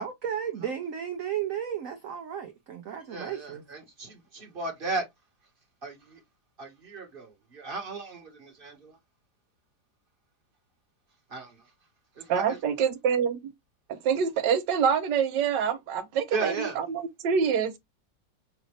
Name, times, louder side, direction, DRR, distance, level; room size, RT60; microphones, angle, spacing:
voice 1, 0.0-3.6, right 9 dB, 60° right, 0.9 m, -34 dB
voice 2, 3.1-5.0 5.8-6.2 6.6-9.0 11.3-11.7 12.1-12.6 16.3-16.8, right 3 dB, 30° right, 1.4 m, -35 dB
voice 3, 12.3-13.5 13.9-17.8, right 7 dB, 80° right, 1.4 m, -26 dB
6.0 x 2.5 x 3.1 m
omnidirectional pair, 1.9 m